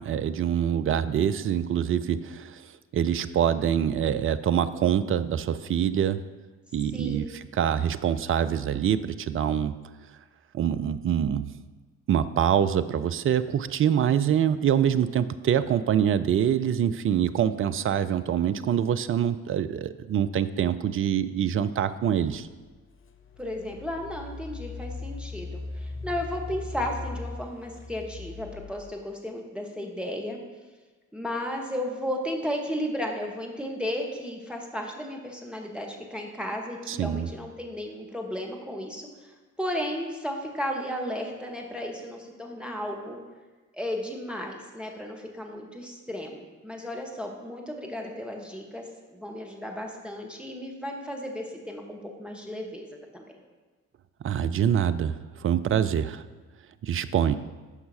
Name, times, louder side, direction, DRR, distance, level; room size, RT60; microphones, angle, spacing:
voice 1, 0.0-6.2 6.7-9.7 10.5-11.5 12.1-22.5 36.9-37.3 54.2-56.2 56.8-57.3, right 9 dB, 35° right, 12 dB, 0.4 m, -25 dB
voice 2, 6.9-7.3 23.4-30.4 31.1-39.1 39.6-43.2 43.7-48.8 49.1-53.3, equal, ahead, 1 dB, 1.3 m, -34 dB
Engine, 23.0-29.0, left 3 dB, 30° left, 0.7 m, -39 dB
11.5 x 5.6 x 2.8 m, 1.3 s
figure-of-eight pair, 40°, 41 cm